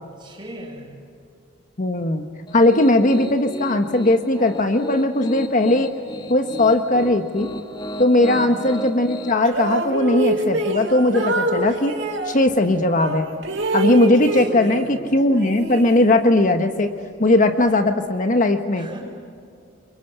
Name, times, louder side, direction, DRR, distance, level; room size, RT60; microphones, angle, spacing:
voice 1, 0.2-0.9 8.3-8.7 14.4-15.0 18.7-19.0, right 1 dB, 25° right, -1 dB, 7.3 m, -39 dB
voice 2, 1.8-2.2 2.5-5.9 6.3-7.5 8.0-11.9 12.2-13.3 13.7-16.9 17.2-18.9, left 1 dB, 45° left, 7 dB, 1.2 m, -18 dB
Piano, 2.5-9.3, left 1 dB, 25° left, 2.0 m, -34 dB
sound 1, 9.4-12.3 13.0-15.0 15.3-16.4, right 2 dB, 80° right, 4.7 m, -25 dB
28.5 x 24.5 x 8.1 m, 2.4 s
head